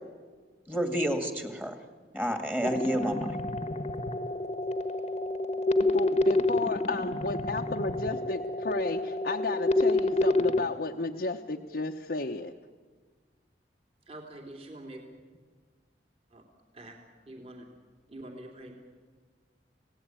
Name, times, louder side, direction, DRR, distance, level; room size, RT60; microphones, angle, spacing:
voice 1, 0.7-1.8 2.1-3.4, equal, 10° right, 6 dB, 2.1 m, -29 dB
sound 1, 2.6-10.6, left 2 dB, 35° left, 1.2 m, -28 dB
voice 2, 5.8-12.5, left 3 dB, 60° left, 1 dB, 1.0 m, -33 dB
voice 3, 14.1-15.0 16.3-16.4 16.7-17.0 17.2-17.6 18.1-18.8, right 1 dB, 35° right, 2 dB, 3.2 m, -45 dB
29.5 x 18.0 x 9.0 m, 1.5 s
head